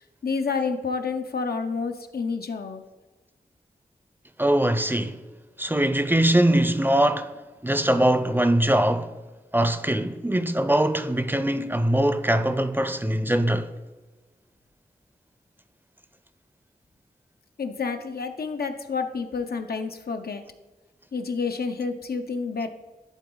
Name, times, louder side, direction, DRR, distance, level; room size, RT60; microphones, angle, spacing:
voice 1, 0.2-2.8 17.6-20.4 21.1-22.7, left 4 dB, 80° left, 0.6 m, -29 dB
voice 2, 4.4-5.2 5.6-7.3 7.6-9.1 9.5-13.7, right 1 dB, 15° right, 0.5 m, -22 dB
11.0 x 3.9 x 3.8 m
cardioid pair, 45°, 16 cm